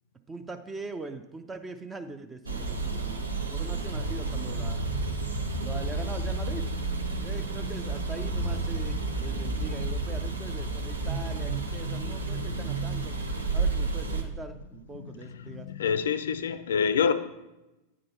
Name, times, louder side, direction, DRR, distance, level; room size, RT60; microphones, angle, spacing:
voice 1, 0.3-3.2 3.5-4.9 5.6-6.7 7.2-13.1 13.5-15.7, right 3 dB, 15° right, 8 dB, 0.5 m, -41 dB
sound 1, 2.5-14.2, right 3 dB, 80° right, 0.8 m, -31 dB
voice 2, 15.5-17.1, left 6 dB, 65° left, 13 dB, 0.5 m, -26 dB
9.2 x 3.8 x 5.6 m, 1.0 s
figure-of-eight pair, 90°, 0 cm